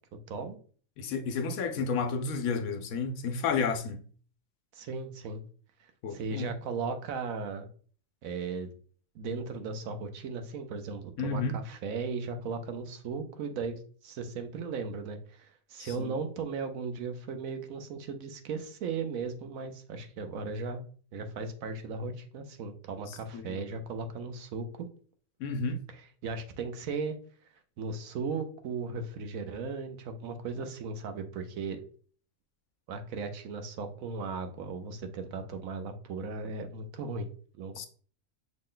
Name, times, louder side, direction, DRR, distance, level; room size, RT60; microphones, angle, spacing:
voice 1, 1.0-4.0 6.0-6.5 11.2-11.5 15.8-16.2 23.1-23.6 25.4-25.8 37.8-37.9, left 5 dB, 90° left, 1.1 m, -31 dB
voice 2, 4.7-5.4 6.1-7.7 8.2-8.7 9.1-20.8 21.1-24.9 25.9-27.2 27.8-31.8 32.9-37.3 37.6-37.9, right 4 dB, 80° right, 1.1 m, -37 dB
6.2 x 2.2 x 3.7 m
omnidirectional pair, 1.4 m